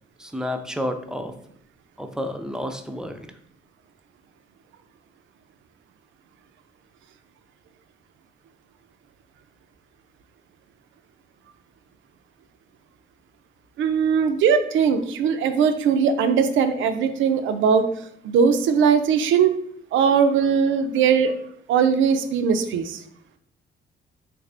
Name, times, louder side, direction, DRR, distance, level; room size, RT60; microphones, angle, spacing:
voice 1, 0.2-1.3 2.0-3.3, left 1 dB, 5° right, 6 dB, 0.4 m, -30 dB
voice 2, 13.8-17.8 18.2-19.5 19.9-21.3 21.7-23.0, right 6 dB, 80° right, 9 dB, 0.4 m, -20 dB
3.4 x 2.5 x 3.2 m, 0.68 s
cardioid pair, 90°, 20 cm